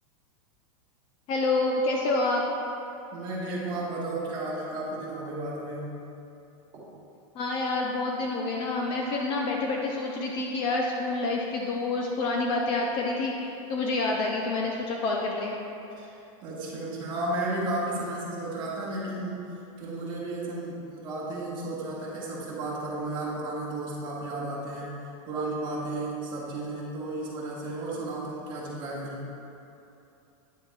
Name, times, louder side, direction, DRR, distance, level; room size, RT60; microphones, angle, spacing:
voice 1, 1.3-2.4 7.3-15.6, left 2 dB, 30° left, -1 dB, 0.5 m, -28 dB
voice 2, 3.1-6.0 6.7-6.9 15.9-19.4 19.8-29.3, right 2 dB, 25° right, -6 dB, 1.6 m, -33 dB
9.7 x 7.0 x 2.4 m, 2.8 s
supercardioid pair, 160°, 17 cm